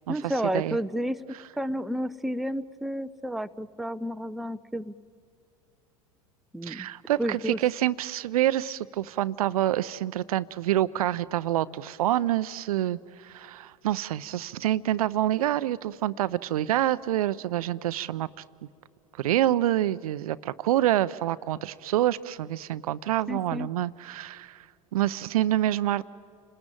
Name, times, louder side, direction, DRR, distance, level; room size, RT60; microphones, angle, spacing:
voice 1, 0.1-1.2 1.6-4.9 6.5-6.9 7.2-7.6 23.3-23.7, equal, ahead, 10 dB, 0.6 m, -31 dB
voice 2, 6.6-18.3 19.2-24.7 24.9-26.0, right 13 dB, 70° right, 17 dB, 0.6 m, -27 dB
29.5 x 20.0 x 8.9 m, 2.5 s
figure-of-eight pair, 75°, 19 cm